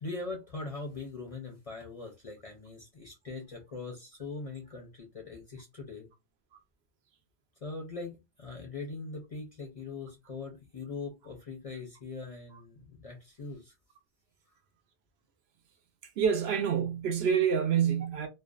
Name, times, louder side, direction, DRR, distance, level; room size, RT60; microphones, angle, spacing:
voice 1, 0.0-6.1 7.6-13.7, left 3 dB, 45° left, 0.5 m, -41 dB
voice 2, 16.2-18.3, right 7 dB, 70° right, 0.8 m, -27 dB
2.4 x 2.2 x 2.3 m
omnidirectional pair, 1.1 m